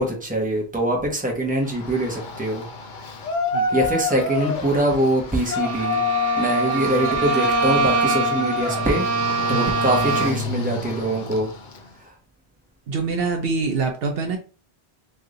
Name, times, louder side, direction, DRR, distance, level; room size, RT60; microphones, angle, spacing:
voice 1, 0.0-2.7 3.7-6.0 6.4-9.0 9.5-11.5 12.0-12.1, right 1 dB, 10° right, 0.9 m, -23 dB
Yell, 1.6-11.9, left 3 dB, 55° left, 0.7 m, -28 dB
voice 2, 3.5-3.9 9.5-9.7 12.9-14.4, right 4 dB, 65° right, 0.8 m, -25 dB
Bowed string instrument, 5.5-10.5, right 5 dB, 25° right, 0.4 m, -24 dB
3.3 x 2.7 x 3.7 m
omnidirectional pair, 1.1 m